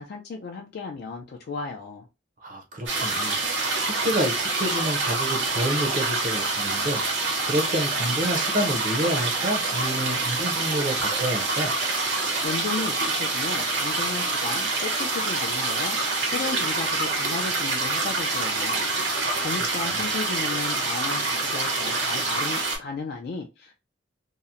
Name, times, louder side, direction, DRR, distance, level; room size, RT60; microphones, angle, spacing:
voice 1, 0.0-2.1 12.4-16.0 16.3-18.9 19.4-23.7, left 4 dB, 60° left, 0.3 m, -34 dB
voice 2, 2.4-3.4 3.8-7.0 7.4-11.7 19.2-19.4 19.8-20.0, equal, 45° right, 0.6 m, -28 dB
sound 1, 2.8-22.8, right 3 dB, 70° right, 0.8 m, -26 dB
2.8 x 2.0 x 2.4 m
head